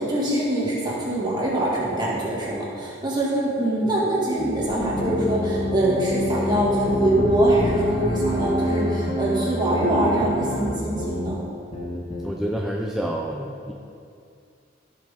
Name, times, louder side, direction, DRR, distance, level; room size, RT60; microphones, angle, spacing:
voice 1, 0.0-11.4, right 1 dB, 25° right, -6 dB, 2.1 m, -23 dB
sound 1, 4.4-6.6 6.9-11.3 11.7-12.3, left 1 dB, 30° left, 1.3 m, -30 dB
sound 2, 4.6-10.8, equal, 70° left, 1.9 m, -29 dB
voice 2, 12.2-13.7, right 1 dB, ahead, -1 dB, 0.5 m, -28 dB
15.0 x 6.3 x 3.7 m, 2.5 s
head